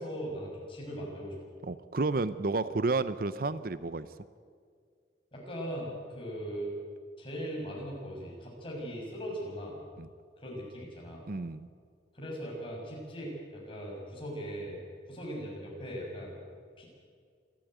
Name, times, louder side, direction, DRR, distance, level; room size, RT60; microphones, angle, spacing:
voice 1, 0.0-1.5 5.3-6.7 7.2-9.8 10.4-11.3 12.1-14.8 15.1-16.3 16.8-16.9, equal, 30° left, -3 dB, 7.0 m, -39 dB
voice 2, 1.6-4.1 10.0-10.1 11.3-11.7, right 3 dB, 50° right, 14 dB, 0.6 m, -31 dB
27.5 x 12.5 x 9.3 m, 2.1 s
head